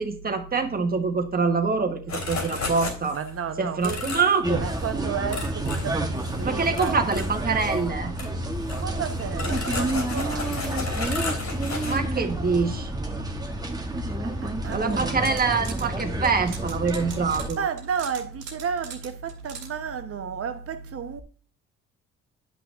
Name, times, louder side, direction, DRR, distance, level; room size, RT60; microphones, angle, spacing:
voice 1, 0.0-3.2 3.6-4.7 6.4-8.1 11.8-12.9 14.7-17.6, right 4 dB, 30° right, 1.3 m, -25 dB
sound 1, 2.1-3.3 3.8-4.4 4.7-4.9 5.3-6.4 6.7-7.8 8.2-8.3 8.6-12.0, left 3 dB, 65° left, 3.0 m, -33 dB
voice 2, 3.1-4.1 4.6-7.0 8.7-10.9 14.4-15.1 17.6-21.2, right 7 dB, 50° right, 1.0 m, -32 dB
sound 2, 4.4-17.5, right 1 dB, 15° right, 1.1 m, -29 dB
sound 3, 15.0-15.9 16.2-19.7, right 6 dB, 80° right, 1.8 m, -40 dB
10.0 x 5.9 x 2.5 m
cardioid pair, 90°, 30 cm